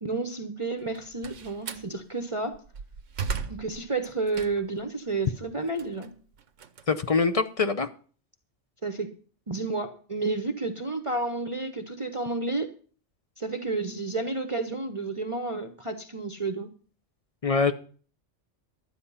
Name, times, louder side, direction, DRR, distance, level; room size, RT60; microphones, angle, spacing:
voice 1, 0.0-2.5 3.5-6.1 8.8-9.1 9.5-12.7 13.4-16.7, right 3 dB, 30° right, 7 dB, 0.9 m, -31 dB
Slam, 0.8-1.9 2.5-4.8 5.3-7.6, right 5 dB, 85° right, 1.3 m, -37 dB
voice 2, 6.9-7.9 17.4-17.7, left 4 dB, 35° left, 10 dB, 0.7 m, -24 dB
12.5 x 8.8 x 5.6 m, 0.42 s
omnidirectional pair, 1.2 m